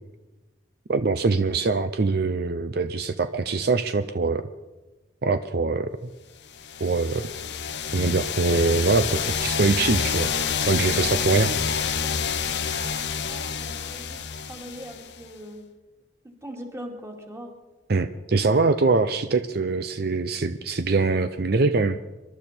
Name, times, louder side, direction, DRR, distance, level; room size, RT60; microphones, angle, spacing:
voice 1, 0.9-4.5 5.2-5.9 6.8-7.3 7.9-10.3 10.7-11.5 17.9-22.0, right 3 dB, 60° right, 10 dB, 0.6 m, -23 dB
sound 1, 6.6-15.3, left 6 dB, 70° left, 0.9 m, -28 dB
voice 2, 12.0-13.0 13.3-14.2 14.5-15.6 16.2-17.5, equal, 15° right, 2 dB, 2.5 m, -41 dB
26.0 x 12.0 x 4.4 m, 1.1 s
head